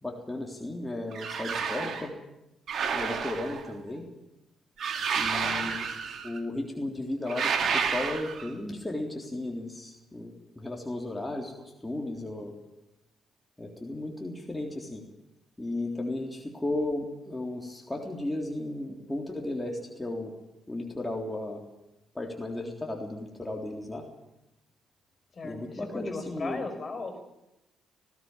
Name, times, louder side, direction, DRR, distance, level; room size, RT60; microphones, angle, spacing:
voice 1, 0.0-2.1 2.9-4.1 5.2-5.8 6.2-11.5 11.8-12.5 13.6-15.0 15.6-20.3 20.7-21.6 22.2-24.0 25.4-26.6, left 1 dB, 15° left, 0 dB, 3.5 m, -34 dB
sound 1, 1.1-2.1 2.7-3.7 4.8-6.4 7.3-8.5, right 6 dB, 60° right, 2.6 m, -30 dB
voice 2, 25.3-27.2, left 3 dB, 40° left, 6 dB, 5.6 m, -38 dB
19.5 x 16.0 x 9.1 m, 0.91 s
hypercardioid pair, 45°, 0 cm